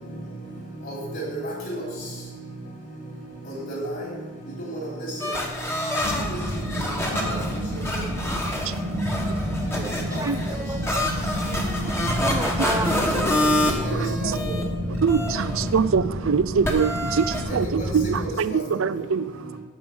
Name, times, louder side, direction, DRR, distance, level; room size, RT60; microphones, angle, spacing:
voice 1, 0.9-1.4 1.7-1.8 3.7-4.1 4.7-4.8 6.3-6.4 7.1-7.4 13.1-13.2 13.8-14.3 17.5-17.6 18.5-18.8, right 1 dB, 45° left, 3.3 m, -31 dB
sound 1, 5.2-14.6 14.9-15.8 16.6-17.4, left 1 dB, 10° left, 1.4 m, -28 dB
sound 2, 6.0-18.2, equal, 80° right, 2.5 m, -30 dB
voice 2, 9.7-11.1 12.2-13.0, right 1 dB, 15° right, 0.7 m, -32 dB
voice 3, 15.0-19.6, right 6 dB, 60° right, 0.4 m, -24 dB
9.5 x 7.1 x 8.0 m
head